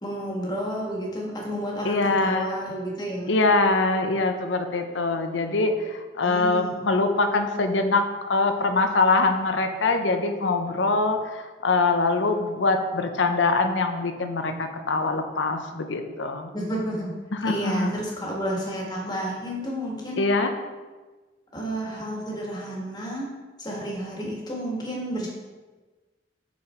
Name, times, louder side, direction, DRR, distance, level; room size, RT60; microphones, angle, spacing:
voice 1, 0.0-3.3 6.2-6.8 16.5-17.1 17.4-20.2 21.5-23.3 23.6-25.3, equal, 25° left, -3 dB, 1.7 m, -31 dB
voice 2, 1.8-2.5 3.3-16.5 17.3-18.0 20.2-20.5, left 3 dB, 85° left, 6 dB, 0.8 m, -23 dB
6.2 x 5.9 x 4.4 m, 1.3 s
head